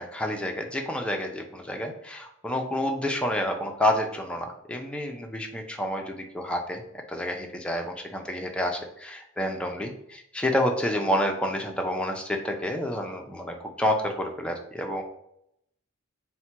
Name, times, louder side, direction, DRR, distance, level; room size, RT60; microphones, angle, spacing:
voice 1, 0.0-15.0, left 1 dB, 5° left, 2 dB, 0.4 m, -29 dB
4.3 x 2.2 x 4.4 m, 0.77 s
head